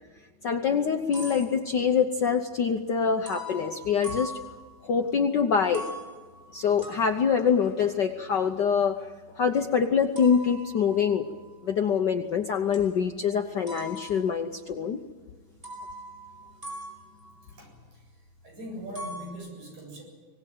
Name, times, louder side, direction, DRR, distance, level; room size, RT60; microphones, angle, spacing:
voice 1, 0.4-4.3 4.8-5.9 6.5-11.2 11.6-15.0, left 6 dB, 85° left, 5 dB, 0.9 m, -25 dB
sound 1, 0.8-2.1 3.3-5.1 5.5-12.3 12.7-13.3 13.7-14.7 15.1-15.2 15.6-18.4 18.7-19.3, equal, 15° right, 5.5 m, -43 dB
voice 2, 18.4-20.0, equal, 80° right, 1 dB, 9.3 m, -40 dB
25.0 x 18.5 x 9.2 m, 1.4 s
omnidirectional pair, 3.3 m